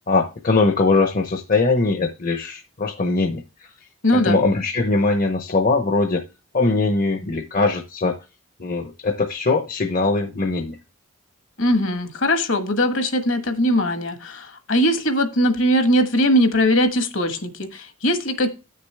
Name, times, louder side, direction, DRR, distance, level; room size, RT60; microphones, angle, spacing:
voice 1, 0.1-3.7 4.1-6.2 6.5-8.2 8.6-10.8, left 3 dB, 40° left, 6 dB, 0.8 m, -21 dB
voice 2, 4.0-4.4 11.6-18.5, equal, 60° left, 9 dB, 1.3 m, -20 dB
8.7 x 6.6 x 3.3 m, 0.28 s
head